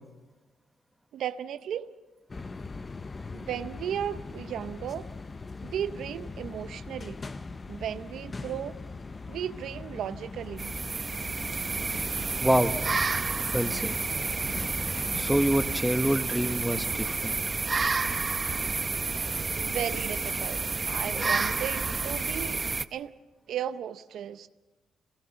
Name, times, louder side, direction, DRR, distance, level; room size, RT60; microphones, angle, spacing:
voice 1, 1.1-1.9 3.3-5.1 5.6-7.2 7.7-8.8 9.3-10.7 19.5-20.6 20.9-22.6 22.9-23.1 23.5-24.5, right 9 dB, 70° right, 12 dB, 0.6 m, -35 dB
sound 1, 2.3-15.8, left 3 dB, 30° left, 0.6 m, -40 dB
sound 2, 10.6-22.8, right 4 dB, 30° right, 0.7 m, -30 dB
voice 2, 12.4-12.7 13.5-13.9 15.1-17.4, right 1 dB, 5° right, 8 dB, 1.2 m, -26 dB
23.0 x 18.0 x 6.9 m, 1.2 s
cardioid pair, 90°, 0 cm